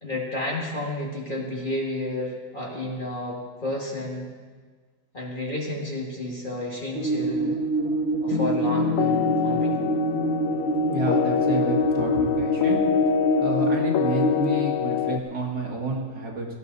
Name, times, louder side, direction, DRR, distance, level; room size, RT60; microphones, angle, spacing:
voice 1, 0.0-4.3 5.1-7.6 8.2-9.8, left 1 dB, 30° left, -2 dB, 2.1 m, -31 dB
sound 1, 6.9-14.4, right 2 dB, 45° right, 2.4 m, -26 dB
sound 2, 8.3-15.2, left 11 dB, 70° left, 0.8 m, -25 dB
voice 2, 10.9-12.8 13.4-16.5, right 2 dB, 65° right, -1 dB, 2.4 m, -29 dB
17.0 x 13.0 x 4.1 m, 1.5 s
omnidirectional pair, 1.9 m